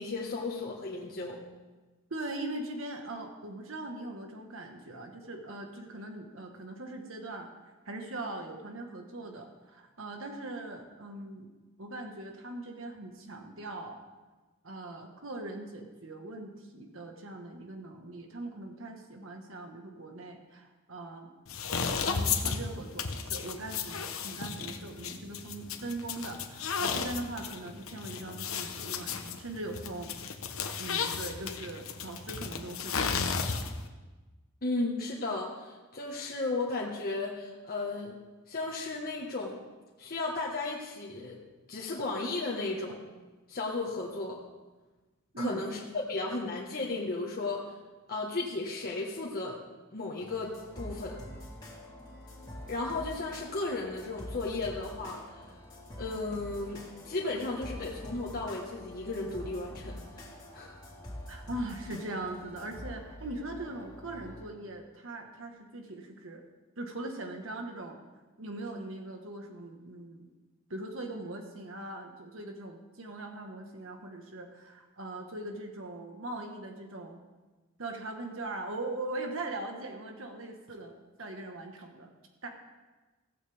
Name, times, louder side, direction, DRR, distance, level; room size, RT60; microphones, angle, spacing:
voice 1, 0.0-1.4 34.6-38.1 38.5-39.6 40.0-41.4 41.7-43.0 43.5-44.4 45.4-47.7 48.1-49.6 49.9-51.2 52.7-55.5 56.0-60.2 60.5-60.8, left 3 dB, 45° left, -4 dB, 1.6 m, -34 dB
voice 2, 2.1-11.5 11.8-14.0 14.6-21.3 22.0-30.1 30.8-33.6 45.3-45.7 61.3-66.4 66.8-68.0 68.4-70.3 70.7-77.2 77.8-82.1 82.4-82.5, right 2 dB, 65° right, 3 dB, 1.5 m, -40 dB
sound 1, 21.5-33.9, left 6 dB, 80° left, 1.1 m, -34 dB
sound 2, 50.2-64.5, equal, 20° left, 3.3 m, -46 dB
16.0 x 15.0 x 3.6 m, 1.2 s
head